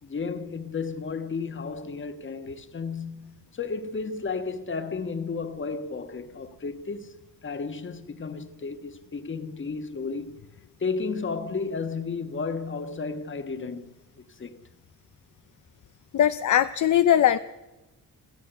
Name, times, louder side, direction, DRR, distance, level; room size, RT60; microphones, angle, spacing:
voice 1, 0.0-7.1 7.4-10.4 10.8-14.6, left 4 dB, 30° left, 1.5 m, -33 dB
voice 2, 16.1-17.4, left 10 dB, 55° left, 0.7 m, -20 dB
27.0 x 14.5 x 8.0 m
wide cardioid pair, 140°, 37 cm